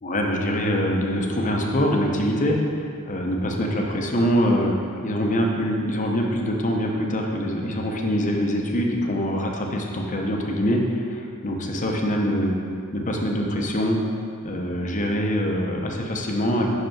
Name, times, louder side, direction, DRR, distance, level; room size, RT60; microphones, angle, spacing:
voice 1, 0.0-4.7 5.0-12.5 12.9-14.0 14.4-16.7, equal, 35° left, 1 dB, 0.8 m, -24 dB
5.9 x 5.3 x 5.8 m, 2.3 s
head